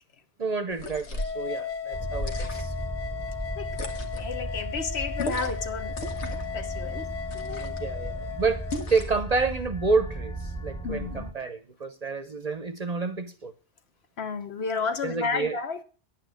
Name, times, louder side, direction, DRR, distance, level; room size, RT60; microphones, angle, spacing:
voice 1, 0.4-2.7 7.5-13.5 15.0-15.6, right 4 dB, 40° right, 0.7 m, -29 dB
sound 1, 0.7-1.4 2.1-2.8 3.7-4.3 5.2-5.7 5.9-6.5 7.3-7.9 8.7-9.2, left 1 dB, 85° left, 1.6 m, -36 dB
sound 2, 1.2-8.9, left 8 dB, 45° left, 0.9 m, -36 dB
sound 3, 1.9-11.3, right 1 dB, 5° left, 0.9 m, -35 dB
voice 2, 4.1-5.9 6.2-7.1 7.3-7.6 10.8-11.3 14.2-15.8, left 4 dB, 65° left, 1.3 m, -32 dB
10.0 x 8.3 x 6.4 m
omnidirectional pair, 1.2 m